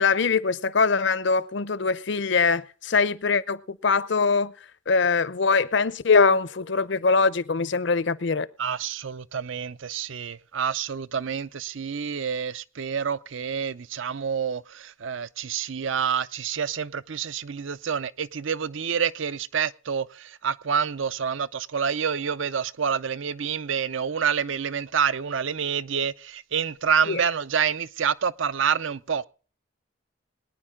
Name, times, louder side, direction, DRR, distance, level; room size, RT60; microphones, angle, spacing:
voice 1, 0.0-4.5 4.9-8.5 27.1-27.2, left 4 dB, 60° left, 0.7 m, -22 dB
voice 2, 8.6-29.3, right 7 dB, 70° right, 0.6 m, -28 dB
21.5 x 9.8 x 3.7 m
head